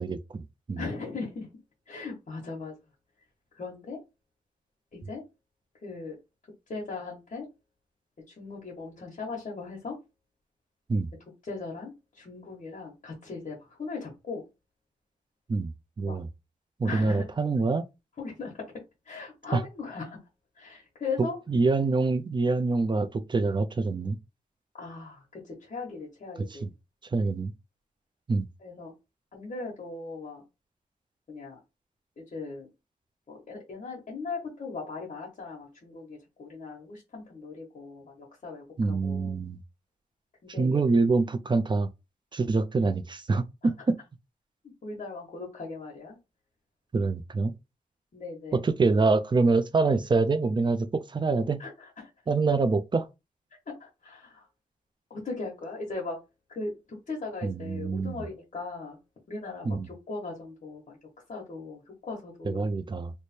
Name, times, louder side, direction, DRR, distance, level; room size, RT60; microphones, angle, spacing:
voice 1, 0.0-0.8 10.9-11.1 15.5-15.7 16.0-16.3 16.8-17.8 19.5-19.6 21.5-24.2 26.5-26.7 27.1-27.5 28.3-28.5 38.8-39.6 40.6-41.9 42.3-44.0 46.9-47.5 48.5-51.6 52.3-53.1 57.4-58.2 59.6-59.9 62.5-63.1, right 3 dB, 35° right, 0.4 m, -25 dB
voice 2, 0.8-1.5 1.9-2.7 3.5-4.0 4.9-5.2 5.8-6.2 6.7-7.5 8.3-10.0 11.4-14.4 16.0-16.2 16.8-17.4 18.2-18.7 19.0-20.2 20.5-21.4 24.7-26.7 28.6-28.9 29.3-30.4 31.3-31.6 32.2-32.7 33.3-39.4 40.4-40.8 42.5-42.6 44.8-46.2 48.1-48.6 51.6-52.1 53.7-54.5 55.1-56.2 56.5-59.0 59.3-61.0 61.3-62.7, left 4 dB, 60° left, 1.1 m, -38 dB
3.2 x 2.1 x 4.2 m
wide cardioid pair, 115°, 14 cm